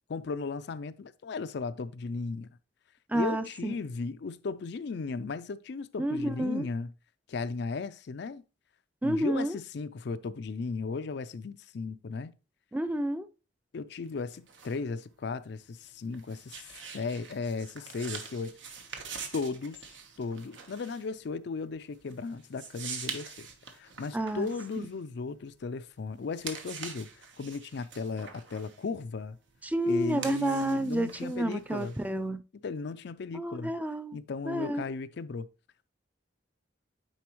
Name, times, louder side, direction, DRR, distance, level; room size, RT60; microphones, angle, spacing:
voice 1, 0.1-2.5 3.1-6.9 7.3-8.4 9.0-12.3 13.7-18.5 19.3-19.8 20.2-23.5 23.7-29.4 29.8-32.0 32.6-33.7 34.1-35.5, left 4 dB, 60° left, 0.4 m, -36 dB
voice 2, 3.1-3.7 6.0-6.7 9.0-9.6 12.7-13.3 24.1-24.5 24.8-24.9 29.6-32.4 33.3-34.2 34.5-34.8, right 1 dB, 10° right, 0.4 m, -30 dB
sound 1, 14.0-25.8 26.2-32.3, right 6 dB, 75° right, 1.2 m, -45 dB
9.4 x 4.1 x 3.0 m
head